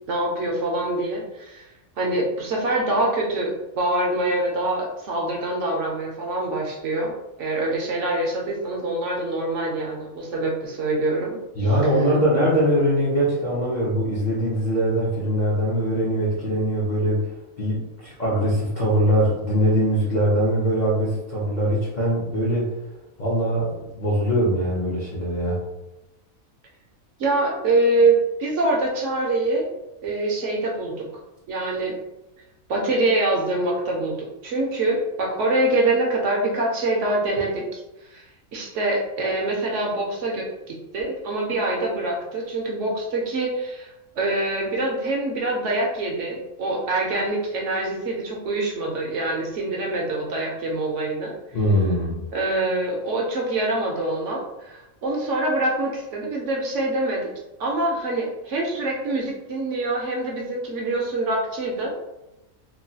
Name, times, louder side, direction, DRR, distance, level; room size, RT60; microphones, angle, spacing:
voice 1, 0.1-1.7 2.0-11.7 27.2-29.7 30.0-31.1 31.5-32.0 32.7-37.8 38.1-38.2 38.5-51.3 52.3-57.3 57.6-62.0, right 2 dB, 65° right, -1 dB, 0.9 m, -25 dB
voice 2, 11.5-17.3 17.6-22.7 23.2-25.6 51.5-52.2, equal, 50° left, -7 dB, 0.6 m, -22 dB
3.0 x 2.2 x 2.7 m, 0.94 s
omnidirectional pair, 1.5 m